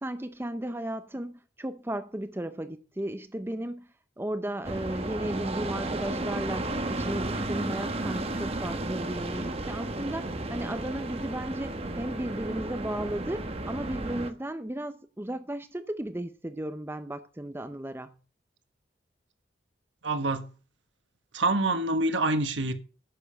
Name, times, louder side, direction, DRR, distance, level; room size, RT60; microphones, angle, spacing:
voice 1, 0.0-18.2, right 1 dB, 10° right, 0.5 m, -35 dB
sound 1, 4.6-14.3, right 2 dB, 30° right, 1.1 m, -33 dB
voice 2, 20.0-20.5 21.3-22.7, right 2 dB, 85° right, 1.5 m, -26 dB
11.0 x 6.9 x 6.4 m
head